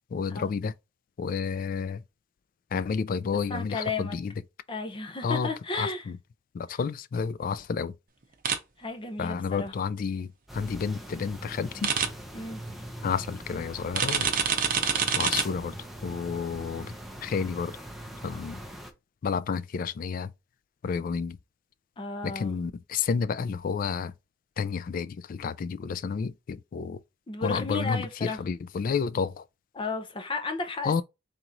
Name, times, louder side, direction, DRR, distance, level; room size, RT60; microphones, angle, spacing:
voice 1, 0.1-0.7 1.2-2.0 2.7-4.3 5.2-6.2 6.5-7.9 9.2-11.9 13.0-14.3 15.2-15.7 16.0-16.9 17.2-17.8 18.2-18.6 19.2-20.3 20.8-21.4 22.2-24.1 24.6-27.0 27.4-29.4 30.8-31.0, left 5 dB, 50° left, 0.3 m, -30 dB
voice 2, 3.5-4.2 4.7-6.0 8.8-9.7 12.3-12.6 22.0-22.5 27.3-28.4 29.7-31.0, left 3 dB, 30° left, 0.8 m, -33 dB
sound 1, 8.4-8.6 11.8-12.1 13.9-15.4, right 7 dB, 50° right, 0.7 m, -25 dB
sound 2, 10.5-18.9, right 1 dB, ahead, 0.6 m, -42 dB
3.6 x 3.0 x 3.8 m
head